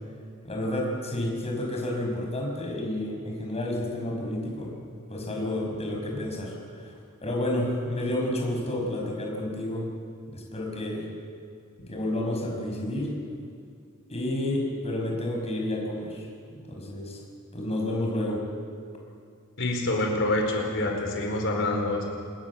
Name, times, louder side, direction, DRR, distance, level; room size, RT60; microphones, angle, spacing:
voice 1, 0.4-4.7 5.1-6.9 7.2-9.8 10.3-11.1 11.9-13.1 14.1-16.2 16.5-17.2 17.5-18.4, left 1 dB, 30° left, 0 dB, 5.8 m, -30 dB
voice 2, 19.6-22.2, left 2 dB, 60° left, 2 dB, 4.6 m, -27 dB
27.0 x 20.0 x 7.4 m, 2.3 s
head